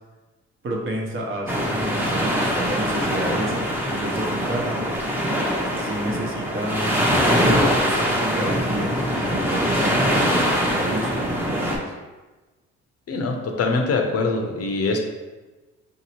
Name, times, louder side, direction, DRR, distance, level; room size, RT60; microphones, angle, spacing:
voice 1, 0.6-4.8 5.8-7.1 7.4-11.9, right 1 dB, 45° right, 0 dB, 0.9 m, -30 dB
sound 1, 1.5-11.8, equal, 5° right, 0.8 m, -23 dB
voice 2, 13.1-15.0, left 3 dB, 55° left, 3 dB, 0.6 m, -23 dB
5.0 x 2.8 x 2.9 m, 1.2 s
cardioid pair, 90°, 30 cm